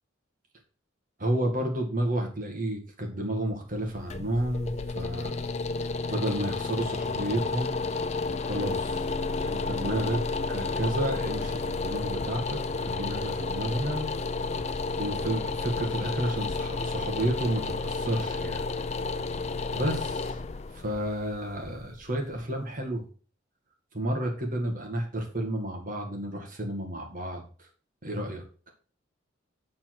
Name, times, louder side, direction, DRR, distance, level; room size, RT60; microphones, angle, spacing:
voice 1, 1.2-4.7 5.0-5.4 6.1-7.7 8.4-9.1 9.4-14.1 15.0-18.6 19.7-20.4 20.7-23.0 23.9-27.4 28.0-28.4, right 1 dB, 45° right, 2 dB, 2.0 m, -31 dB
sound 1, 3.7-22.7, left 3 dB, 35° left, 0.5 m, -31 dB
7.2 x 4.2 x 6.0 m, 0.40 s
head